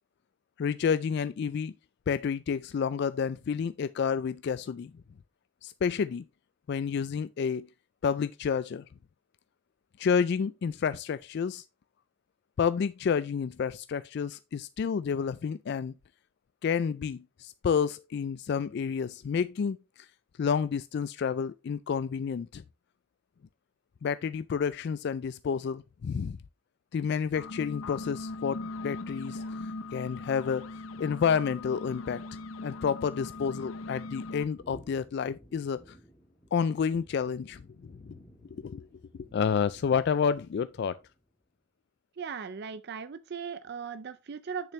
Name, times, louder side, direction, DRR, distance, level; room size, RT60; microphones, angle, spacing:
voice 1, 0.6-1.7 2.1-4.9 5.6-6.2 6.7-7.7 8.0-8.8 10.0-11.6 12.6-15.9 16.6-20.1 20.4-22.6 24.0-26.4 26.9-30.7 31.0-32.2 32.6-36.0 36.5-38.1 38.5-38.9 39.3-41.0, left 6 dB, 55° left, 0.3 m, -30 dB
sound 1, 27.2-34.5, left 2 dB, 80° left, 0.8 m, -40 dB
sound 2, 34.5-41.3, equal, 10° left, 1.6 m, -56 dB
voice 2, 42.2-44.7, right 6 dB, 50° right, 0.4 m, -38 dB
8.3 x 6.8 x 3.1 m
head